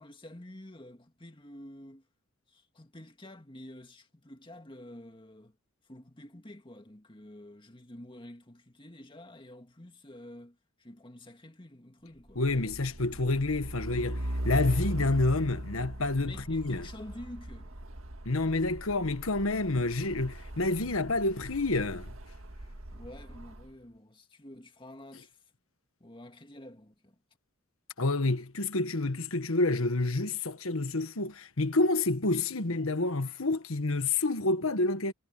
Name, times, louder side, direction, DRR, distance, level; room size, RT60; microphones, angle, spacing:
voice 1, 0.0-2.1 2.5-5.6 5.8-12.7 16.2-17.8 22.9-25.4 26.0-27.2, left 1 dB, 25° left, 2.2 m, -49 dB
voice 2, 12.3-16.8 18.2-22.1 28.0-35.1, left 2 dB, 75° left, 1.5 m, -28 dB
Truck, 12.3-23.7, right 1 dB, 75° right, 1.9 m, -39 dB
head